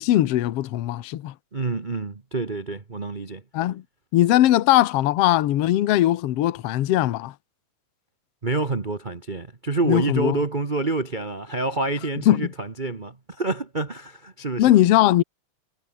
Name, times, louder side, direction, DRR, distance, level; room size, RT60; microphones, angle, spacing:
voice 1, 0.0-1.3 3.5-3.8 4.1-7.3 9.8-10.4 12.3-12.5 14.6-15.2, left 14 dB, 65° left, 1.8 m, -20 dB
voice 2, 1.5-3.4 8.4-14.7, right 3 dB, 85° right, 0.4 m, -27 dB
omnidirectional pair, 3.4 m